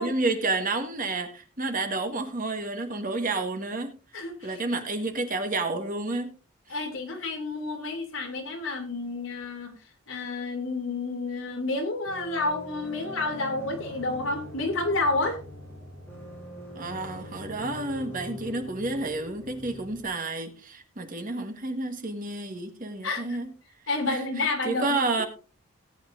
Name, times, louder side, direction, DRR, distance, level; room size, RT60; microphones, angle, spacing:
voice 1, 0.0-6.3 16.7-23.5 24.1-25.3, right 2 dB, 40° right, 6 dB, 1.5 m, -30 dB
voice 2, 4.1-4.6 6.7-9.7 10.1-15.4 23.0-23.2 23.9-25.0, left 3 dB, 65° left, 3 dB, 2.7 m, -30 dB
sound 1, 12.1-20.1, left 1 dB, 10° left, 4.8 m, -43 dB
18.0 x 9.2 x 2.6 m, 0.34 s
head